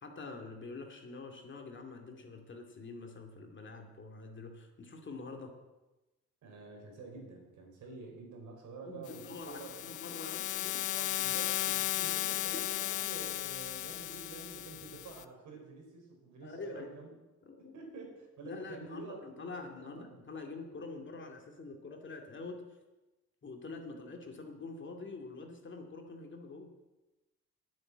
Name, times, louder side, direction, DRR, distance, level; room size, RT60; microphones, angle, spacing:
voice 1, 0.0-5.5 8.8-10.8 12.5-12.6 16.4-17.0 17.5-17.7 18.4-22.8 23.4-26.7, left 3 dB, 40° left, 3 dB, 2.3 m, -46 dB
voice 2, 6.4-9.9 10.9-17.1 17.6-19.2 19.4-20.1, right 4 dB, 75° right, 1 dB, 4.5 m, -48 dB
sound 1, 9.1-15.2, left 15 dB, 85° left, 0.6 m, -36 dB
9.7 x 8.5 x 8.6 m, 1.1 s
cardioid pair, 90°, 30 cm